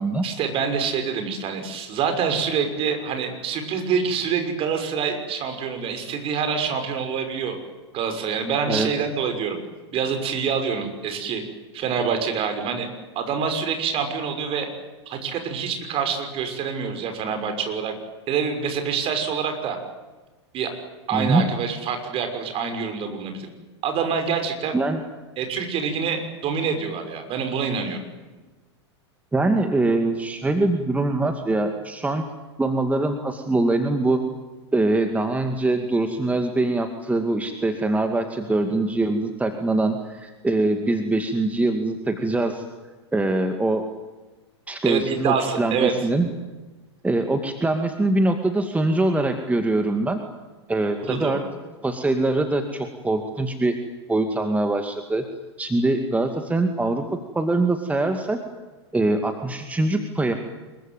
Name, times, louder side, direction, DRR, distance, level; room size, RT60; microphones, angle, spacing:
voice 1, 0.2-7.6 7.9-9.6 9.9-11.4 11.7-12.9 13.1-14.7 15.1-17.9 18.3-19.8 20.5-20.7 21.1-23.5 23.8-24.8 25.4-28.0 44.8-45.9 51.0-51.5, right 6 dB, 40° right, 6 dB, 6.2 m, -26 dB
voice 2, 21.1-21.5 24.7-25.0 29.3-32.2 32.6-34.2 34.7-42.6 43.1-43.8 44.7-46.3 47.0-50.2 50.7-51.4 51.8-53.8 54.1-55.2 55.6-58.4 58.9-60.3, right 2 dB, 10° right, 6 dB, 2.3 m, -23 dB
26.0 x 23.0 x 9.2 m, 1.3 s
hypercardioid pair, 95°, 15 cm